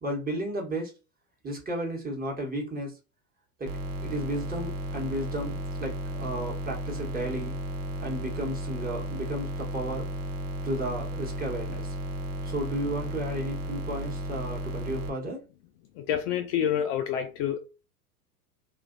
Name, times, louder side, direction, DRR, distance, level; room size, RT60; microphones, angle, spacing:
voice 1, 0.0-0.9 1.4-3.0 3.6-3.7 4.0-7.6 8.0-10.1 10.6-11.9 12.4-15.4, right 1 dB, 20° right, 1.2 m, -33 dB
sound 1, 3.7-15.1, equal, 70° right, 0.8 m, -34 dB
voice 2, 16.1-17.6, left 9 dB, 40° left, 0.4 m, -27 dB
2.7 x 2.4 x 2.5 m
hypercardioid pair, 90°, 47 cm